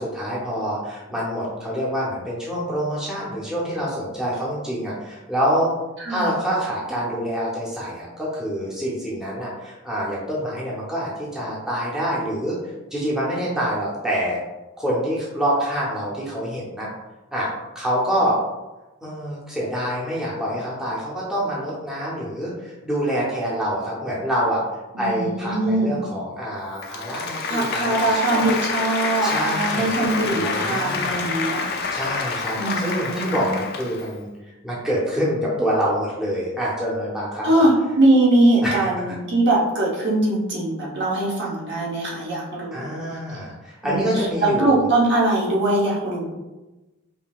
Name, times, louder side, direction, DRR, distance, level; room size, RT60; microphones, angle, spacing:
voice 1, 0.0-5.7 6.1-12.6 12.9-14.4 14.8-16.9 17.3-17.5 17.7-18.4 19.0-24.6 25.0-28.5 29.2-31.2 31.9-34.3 34.6-37.7 38.6-39.0 42.7-44.8, equal, 5° right, -7 dB, 0.7 m, -26 dB
voice 2, 24.9-26.0 27.5-31.6 32.5-33.5 37.4-43.0 43.8-46.3, right 2 dB, 55° right, -4 dB, 1.0 m, -21 dB
Applause, 26.7-34.2, left 4 dB, 45° left, 0.4 m, -27 dB
5.3 x 2.7 x 2.3 m, 1.1 s
head